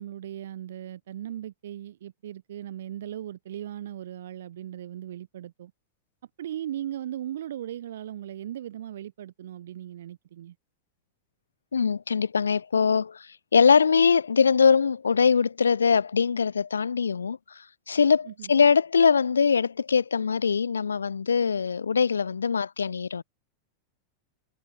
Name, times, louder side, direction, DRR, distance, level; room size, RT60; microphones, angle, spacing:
voice 1, 0.0-5.7 6.4-10.5 18.3-18.5, right 11 dB, 60° right, 0.9 m, -38 dB
voice 2, 11.7-17.4 17.9-23.2, left 6 dB, 75° left, 0.8 m, -22 dB
figure-of-eight pair, 90°, 0 cm